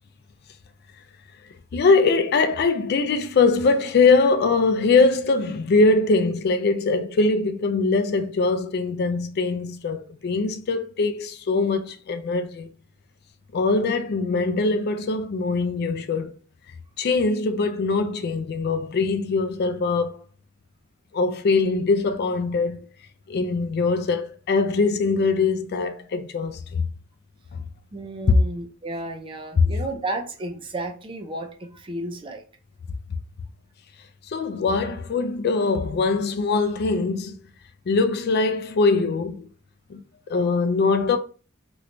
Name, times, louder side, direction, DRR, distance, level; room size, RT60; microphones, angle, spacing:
voice 1, 1.7-12.7 13.5-16.3 17.0-20.2 21.1-22.8 23.3-26.8 27.5-27.6 29.6-29.7 34.3-37.4 37.9-39.5 39.9-40.0 40.3-41.2, left 3 dB, 50° left, 0.4 m, -22 dB
voice 2, 27.9-32.4, right 2 dB, 25° right, 0.5 m, -33 dB
3.1 x 3.0 x 2.5 m
head